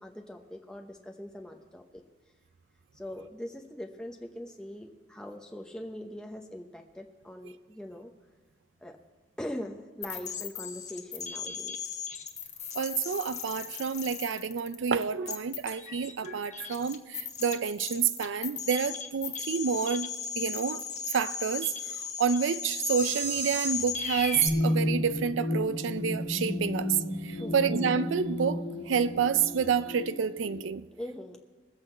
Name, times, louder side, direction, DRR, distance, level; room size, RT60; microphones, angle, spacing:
voice 1, 0.0-2.0 2.9-8.1 8.8-9.0 9.4-11.9 27.4-27.6 31.0-31.4, left 1 dB, 5° left, 0.7 m, -41 dB
sound 1, 10.0-24.5, left 4 dB, 40° left, 1.2 m, -36 dB
voice 2, 12.8-20.1 20.4-20.8 21.1-21.7 22.2-27.0 27.2-30.8, right 6 dB, 90° right, 0.4 m, -29 dB
sound 2, 24.3-30.7, left 1 dB, 65° left, 1.6 m, -32 dB
21.0 x 8.0 x 4.4 m
head